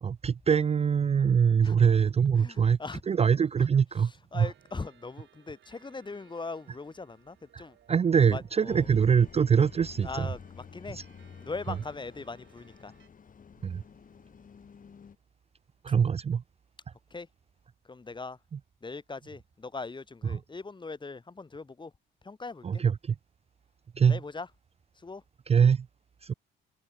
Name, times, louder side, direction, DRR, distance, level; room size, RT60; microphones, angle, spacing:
voice 1, 0.0-2.8 3.1-4.5 7.5-7.6 7.9-10.3 13.6-13.8 15.8-16.4 22.6-23.1 24.0-24.2 25.5-25.9 26.2-26.3, right 7 dB, 30° right, 0.5 m, -23 dB
voice 2, 2.3-3.1 3.6-3.7 4.0-7.8 8.3-8.9 10.0-11.0 11.4-12.9 17.1-17.3 17.8-18.4 18.8-21.9 22.2-22.8 24.1-24.5 25.0-25.2, left 3 dB, 25° left, 1.9 m, -40 dB
sound 1, 4.5-13.1, right 10 dB, 65° right, 3.2 m, -63 dB
sound 2, 8.7-15.2, left 6 dB, 40° left, 2.4 m, -49 dB
cardioid pair, 90°, 20 cm